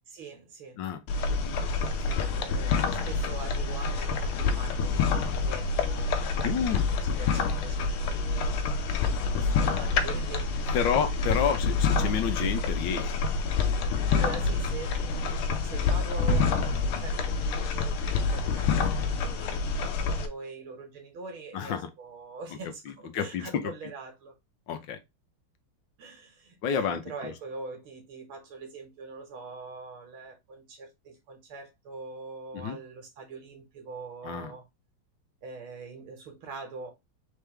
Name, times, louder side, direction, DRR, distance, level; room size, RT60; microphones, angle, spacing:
voice 1, 0.1-0.8 1.9-8.7 9.2-10.8 11.4-11.6 14.1-24.3 26.0-34.6 35.4-36.9, right 4 dB, 80° right, 2.3 m, -43 dB
sound 1, 1.1-20.3, left 4 dB, 85° left, 1.6 m, -27 dB
voice 2, 6.4-6.8 10.7-13.2 21.5-21.9 23.1-23.7 24.7-25.0 26.6-27.3 32.5-32.8 34.2-34.5, left 7 dB, 70° left, 1.4 m, -29 dB
sound 2, 16.3-18.3, left 1 dB, 55° left, 1.0 m, -31 dB
4.5 x 3.5 x 3.3 m
omnidirectional pair, 2.3 m